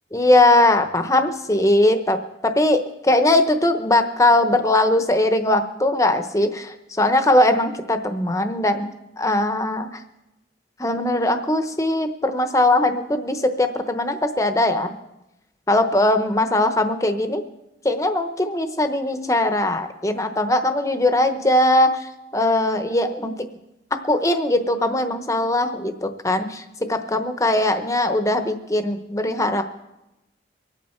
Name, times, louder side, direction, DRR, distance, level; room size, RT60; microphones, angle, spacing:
voice 1, 0.1-8.9 9.2-9.9 10.8-14.9 15.7-17.4 17.8-22.1 22.3-23.3 23.9-29.6, left 1 dB, 20° left, 8 dB, 0.9 m, -20 dB
24.5 x 8.8 x 4.5 m, 0.94 s
head